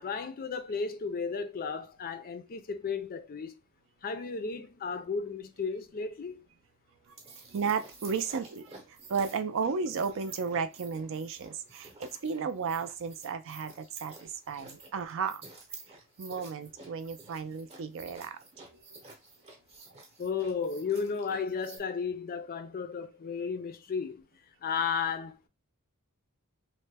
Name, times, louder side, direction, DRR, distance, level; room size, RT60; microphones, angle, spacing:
voice 1, 0.0-3.5 4.0-6.4 20.2-24.2 24.6-25.5, left 5 dB, 40° left, 0.4 m, -34 dB
sound 1, 7.0-21.8, right 3 dB, 30° right, 0.7 m, -51 dB
voice 2, 7.5-15.4 16.2-18.4, right 5 dB, 60° right, 0.4 m, -34 dB
3.2 x 2.1 x 3.3 m
head